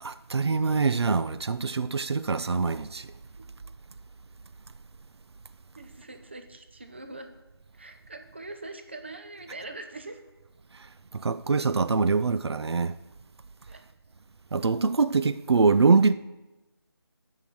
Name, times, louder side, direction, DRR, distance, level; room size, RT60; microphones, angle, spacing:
voice 1, 0.0-3.1 11.1-13.0 14.5-16.1, right 4 dB, 80° right, 0.5 m, -24 dB
voice 2, 5.8-7.3 7.8-10.2 13.7-13.8, right 2 dB, 25° right, 0.6 m, -42 dB
14.5 x 5.7 x 4.6 m
figure-of-eight pair, 175°, 13 cm